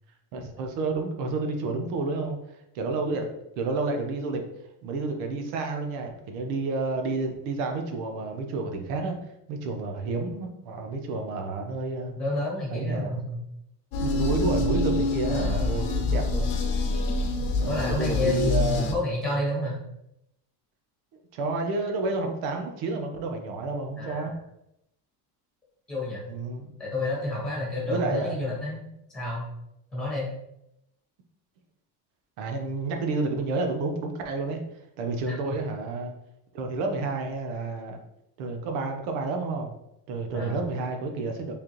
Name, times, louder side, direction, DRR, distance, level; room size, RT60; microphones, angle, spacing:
voice 1, 0.3-2.4 2.7-4.4 4.8-9.2 9.5-12.1 12.7-13.1 14.0-16.5 17.5-18.9 21.3-24.3 26.3-26.7 27.8-28.4 32.4-34.6 35.0-36.1 36.5-38.0 38.4-39.7 40.1-41.5, right 3 dB, 80° right, 4 dB, 1.0 m, -30 dB
voice 2, 12.2-13.4 15.3-15.7 17.6-19.8 24.0-24.3 25.9-26.2 26.8-28.8 29.1-29.4 29.9-30.3 35.3-35.4 40.3-40.6, left 2 dB, ahead, -5 dB, 1.5 m, -29 dB
sound 1, 13.9-18.9, left 2 dB, 60° left, 0.8 m, -26 dB
4.7 x 3.5 x 3.0 m, 0.82 s
cardioid pair, 170°, 46 cm